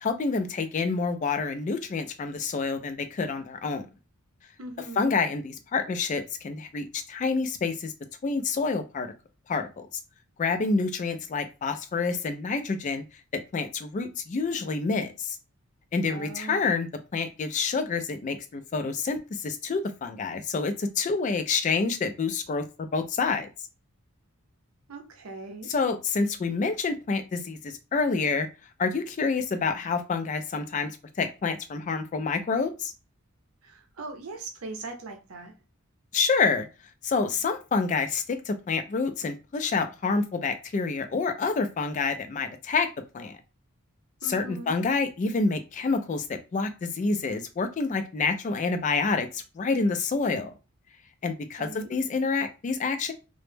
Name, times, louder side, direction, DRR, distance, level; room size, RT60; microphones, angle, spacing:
voice 1, 0.0-3.9 5.0-7.9 8.2-9.1 9.5-9.7 10.4-13.0 13.5-15.4 15.9-16.9 17.1-23.5 25.6-28.5 28.8-30.9 31.2-32.9 36.1-36.7 37.0-42.9 43.1-43.3 44.2-46.3 46.5-50.5 51.2-53.1, left 4 dB, 35° left, 0.3 m, -28 dB
voice 2, 4.6-5.2 16.1-16.7 24.9-25.7 33.6-35.5 44.2-44.8 51.5-51.9, right 2 dB, 75° right, 0.6 m, -40 dB
2.0 x 2.0 x 3.1 m
head